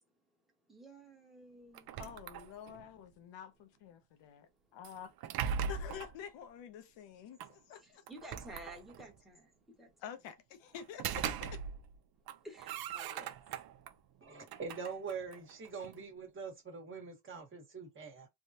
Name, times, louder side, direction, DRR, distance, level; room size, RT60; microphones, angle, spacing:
voice 1, 0.7-2.0 7.8-10.0 12.4-13.4, right 1 dB, ahead, 1.1 m, -52 dB
sound 1, 1.7-2.9 4.8-6.2 7.4-7.5 8.1-9.2 10.7-12.0 12.3-13.9 14.4-16.0, right 7 dB, 55° right, 0.5 m, -40 dB
voice 2, 2.0-8.0 10.0-11.6, left 9 dB, 80° left, 0.8 m, -49 dB
voice 3, 14.2-18.3, right 5 dB, 30° right, 1.3 m, -44 dB
3.5 x 2.2 x 2.7 m
cardioid pair, 125°, 43 cm